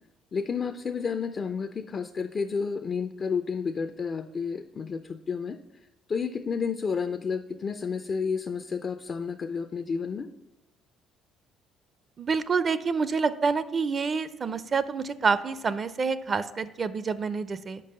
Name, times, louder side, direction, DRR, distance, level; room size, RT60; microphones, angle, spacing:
voice 1, 0.3-5.6 6.1-10.3, left 5 dB, 45° left, 9 dB, 0.4 m, -31 dB
voice 2, 12.2-17.8, right 5 dB, 40° right, 15 dB, 0.4 m, -27 dB
5.3 x 5.2 x 6.5 m, 0.98 s
supercardioid pair, 70°, 0 cm